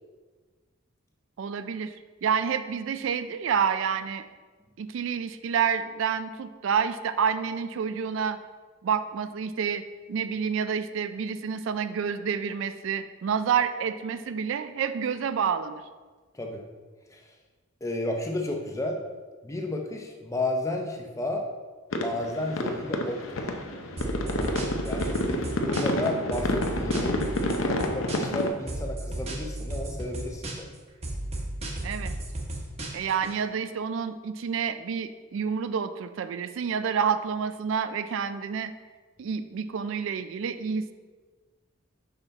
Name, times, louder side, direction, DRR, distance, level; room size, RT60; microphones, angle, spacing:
voice 1, 1.4-4.3 4.8-8.4 8.8-9.8 10.1-15.8 31.8-32.1 32.9-38.7 39.2-40.9, right 7 dB, 65° right, 11 dB, 0.3 m, -28 dB
voice 2, 17.8-19.0 19.4-21.4 22.0-23.4 24.8-27.3 27.6-30.7, left 1 dB, 15° left, 2 dB, 0.6 m, -32 dB
sound 1, 21.9-28.5, left 1 dB, 75° left, 0.6 m, -29 dB
sound 2, 24.0-26.0 26.3-28.4 28.7-30.8 31.0-33.3, right 1 dB, 30° right, 0.9 m, -34 dB
5.7 x 5.7 x 4.0 m, 1.4 s
head